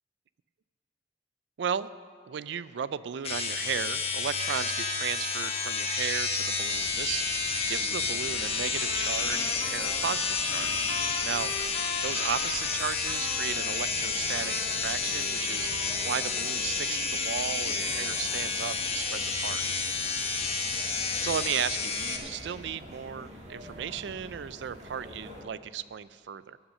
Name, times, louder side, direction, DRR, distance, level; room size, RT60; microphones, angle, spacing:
voice 1, 1.6-1.9 2.3-10.9 11.2-11.5 12.0-19.6 21.2-26.6, right 8 dB, 75° right, 17 dB, 0.4 m, -35 dB
sound 1, 3.2-22.2, left 4 dB, 35° left, 1.1 m, -30 dB
sound 2, 6.7-25.4, equal, 40° right, 1.4 m, -46 dB
Trumpet, 8.3-13.8 14.3-16.2, left 4 dB, 70° left, 0.7 m, -41 dB
17.5 x 5.9 x 6.5 m, 2.3 s
head